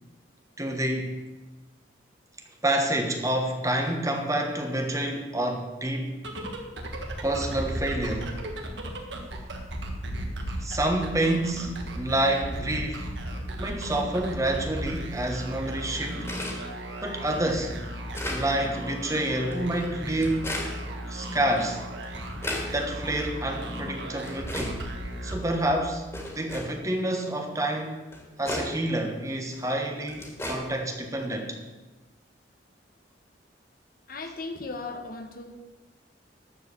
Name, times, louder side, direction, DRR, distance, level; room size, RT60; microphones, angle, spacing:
voice 1, 0.6-1.2 2.6-6.1 7.2-8.4 10.6-13.1 13.6-16.3 17.0-17.7 18.3-20.5 21.1-21.8 22.7-24.8 25.2-26.0 26.3-28.0 28.4-31.6, right 1 dB, 15° right, 3 dB, 1.2 m, -28 dB
sound 1, 6.2-25.9, right 1 dB, 75° right, 1.6 m, -35 dB
sound 2, 16.3-16.6 17.2-17.3 17.8-18.4 19.4-19.5 20.2-20.7 21.6-21.7 22.0-22.7 23.5-23.6 24.2-24.7 25.4-25.5 26.1-26.7 27.7-27.8 28.1-28.7 29.5-29.6 30.1-30.5, left 1 dB, 15° left, 2.2 m, -34 dB
voice 2, 34.1-35.6, left 3 dB, 50° left, 6 dB, 1.2 m, -37 dB
13.0 x 4.8 x 8.4 m, 1.2 s
head